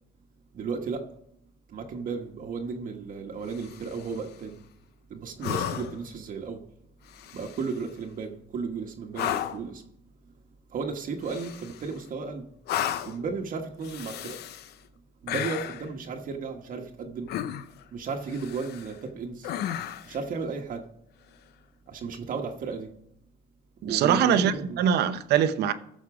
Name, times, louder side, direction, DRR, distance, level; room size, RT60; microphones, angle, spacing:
voice 1, 0.5-1.1 1.7-4.6 5.1-6.6 7.3-9.8 10.2-10.3 10.7-12.5 13.0-14.4 15.2-17.4 17.9-19.5 20.0-20.9 21.9-22.9 23.8-24.8, right 5 dB, 55° right, 1.3 m, -34 dB
sound 1, 3.5-4.2 5.4-6.1 7.1-7.8 9.1-9.7 11.2-12.0 12.7-13.2 13.8-14.7 15.3-15.9 17.3-17.8 18.3-19.0 19.4-20.2 22.0-22.2, left 11 dB, 75° left, 0.7 m, -34 dB
voice 2, 23.8-25.7, right 8 dB, 75° right, 0.8 m, -23 dB
14.5 x 6.5 x 4.9 m
cardioid pair, 110°, 17 cm